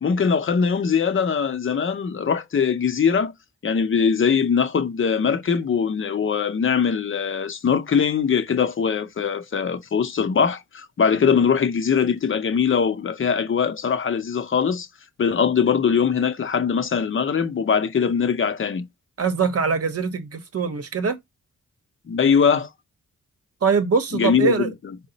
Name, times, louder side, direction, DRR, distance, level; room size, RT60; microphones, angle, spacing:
voice 1, 0.0-3.3 3.6-14.9 15.2-18.9 22.1-22.7 24.1-24.7, left 6 dB, 40° left, 0.6 m, -21 dB
voice 2, 19.2-21.2 23.6-24.7, right 5 dB, 50° right, 0.9 m, -22 dB
4.7 x 2.0 x 3.9 m
cardioid pair, 70°, 32 cm